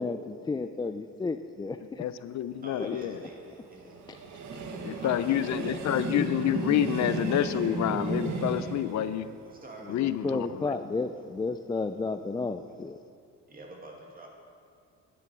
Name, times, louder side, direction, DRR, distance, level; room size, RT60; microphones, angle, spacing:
voice 1, 0.0-2.0 2.8-2.9 9.9-13.0, left 3 dB, 15° left, 7 dB, 0.3 m, -32 dB
voice 2, 2.0-3.2 4.8-9.3 9.9-10.8, left 11 dB, 65° left, 14 dB, 0.6 m, -28 dB
Train, 2.0-11.1 11.5-11.6, right 4 dB, 70° right, 1.2 m, -44 dB
voice 3, 2.6-4.4 5.0-6.1 9.4-10.0 13.5-14.3, right 2 dB, 30° right, 0 dB, 2.2 m, -47 dB
sound 1, 4.4-8.8, right 3 dB, 45° right, 1.7 m, -34 dB
9.4 x 9.0 x 6.1 m, 2.3 s
cardioid pair, 90°, 30 cm